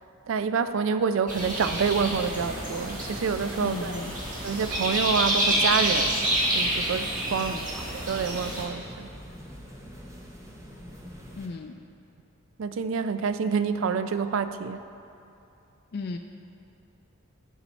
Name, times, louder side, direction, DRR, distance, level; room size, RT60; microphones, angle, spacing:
voice 1, 0.3-3.9 4.4-6.3 6.5-9.1 12.6-14.8, right 6 dB, 65° right, 11 dB, 0.3 m, -27 dB
sound 1, 1.3-8.6, right 1 dB, 40° right, 1.4 m, -28 dB
sound 2, 1.8-11.5, equal, 15° right, 0.7 m, -44 dB
voice 2, 3.6-4.1 7.4-7.6 11.3-11.7 15.9-16.2, left 3 dB, 45° left, 4 dB, 0.3 m, -35 dB
10.0 x 5.6 x 4.1 m, 2.8 s
head